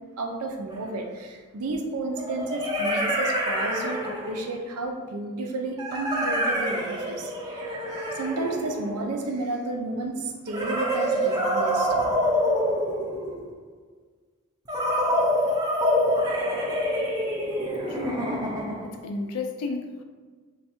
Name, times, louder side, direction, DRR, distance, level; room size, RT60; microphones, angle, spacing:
voice 1, 0.2-12.1, right 2 dB, 80° right, 2 dB, 0.5 m, -32 dB
sound 1, 0.7-0.8 2.2-4.5 5.8-9.3 10.5-13.5 14.7-19.0, equal, 20° right, 0.5 m, -26 dB
voice 2, 17.9-18.3 18.8-20.0, left 3 dB, 80° left, 4 dB, 0.4 m, -33 dB
3.3 x 2.3 x 4.3 m, 1.4 s
head